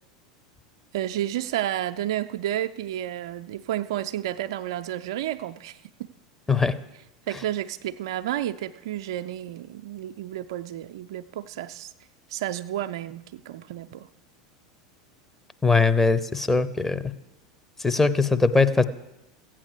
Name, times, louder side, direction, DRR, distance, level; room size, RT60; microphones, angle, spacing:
voice 1, 0.9-6.1 7.3-11.9 12.3-14.1, right 12 dB, 60° right, 10 dB, 0.5 m, -31 dB
voice 2, 15.6-17.0 17.8-18.8, left 4 dB, 10° left, 9 dB, 0.9 m, -21 dB
15.0 x 8.9 x 6.8 m, 0.93 s
figure-of-eight pair, 80°, 3 cm